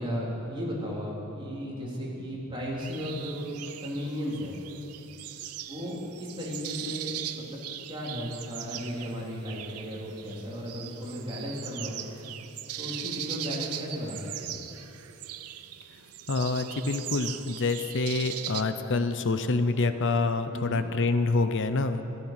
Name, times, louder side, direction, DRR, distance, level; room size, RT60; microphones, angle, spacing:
voice 1, 0.0-3.5 3.8-4.6 5.7-7.6 7.9-12.0 12.8-14.5 20.5-20.9, equal, 25° right, -5 dB, 3.3 m, -35 dB
sound 1, 2.8-18.6, right 11 dB, 85° right, 0.6 m, -40 dB
voice 2, 16.3-22.0, left 3 dB, 55° left, 10 dB, 0.7 m, -27 dB
15.0 x 14.5 x 5.9 m, 2.9 s
head